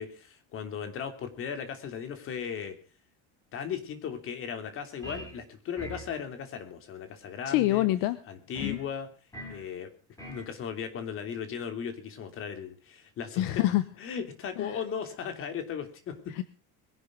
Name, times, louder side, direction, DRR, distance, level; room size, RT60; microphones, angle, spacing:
voice 1, 0.0-2.8 3.5-7.9 8.3-9.1 9.5-9.9 10.3-13.4 14.0-16.3, left 7 dB, 35° left, 8 dB, 3.1 m, -37 dB
sound 1, 5.0-5.4 5.8-6.1 8.6-8.8 9.3-9.6 10.2-10.5, equal, 10° left, 5.9 m, -42 dB
voice 2, 7.5-8.2 8.6-8.8 13.4-13.8 14.6-14.8 16.4-16.5, left 16 dB, 65° left, 14 dB, 1.1 m, -26 dB
22.0 x 11.0 x 5.2 m, 0.38 s
cardioid pair, 175°, 36 cm